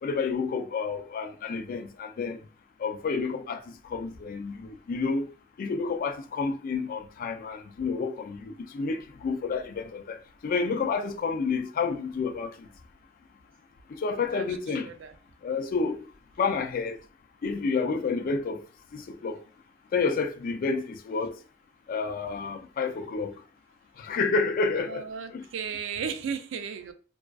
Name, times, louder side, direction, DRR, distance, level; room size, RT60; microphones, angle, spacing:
voice 1, 0.0-2.4 2.8-5.3 5.6-12.7 13.9-14.9 15.4-16.1 16.4-17.0 17.4-18.6 18.9-19.4 19.9-21.4 21.9-23.4 24.0-25.1 25.3-25.5, left 4 dB, 45° left, 0.3 m, -30 dB
voice 2, 14.8-15.1 24.8-26.9, right 6 dB, 80° right, 0.3 m, -35 dB
2.4 x 2.3 x 2.2 m
head